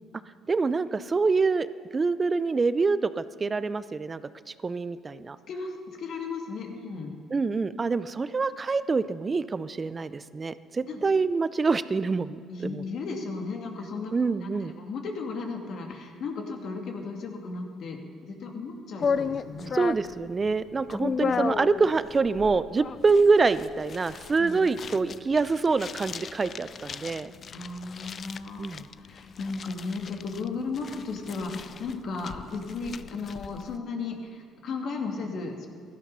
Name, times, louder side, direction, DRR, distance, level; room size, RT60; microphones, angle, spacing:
voice 1, 0.5-4.2 4.6-5.4 7.3-12.8 14.1-14.8 19.7-27.3 28.6-28.9, right 4 dB, 30° right, 15 dB, 0.6 m, -26 dB
voice 2, 5.5-7.1 10.8-11.0 12.5-14.1 14.4-19.7 20.9-21.4 24.4-24.6 27.5-35.7, left 4 dB, 60° left, 2 dB, 2.3 m, -35 dB
sound 1, 19.0-33.8, left 6 dB, 45° left, 0.4 m, -35 dB
16.0 x 12.0 x 5.6 m, 2.1 s
supercardioid pair, 70°, 0 cm